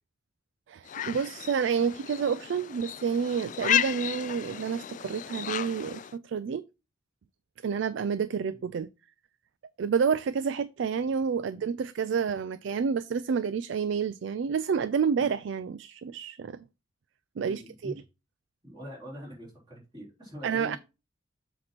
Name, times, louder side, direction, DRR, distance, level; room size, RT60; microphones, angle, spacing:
voice 1, 0.7-6.6 7.6-8.9 9.8-16.6 17.4-17.9 20.4-20.8, right 6 dB, 70° right, 0.3 m, -29 dB
sound 1, 0.9-6.2, left 10 dB, 40° left, 0.3 m, -33 dB
voice 2, 17.4-18.0 18.6-20.8, equal, 25° right, 3.5 m, -44 dB
7.6 x 2.9 x 5.9 m
head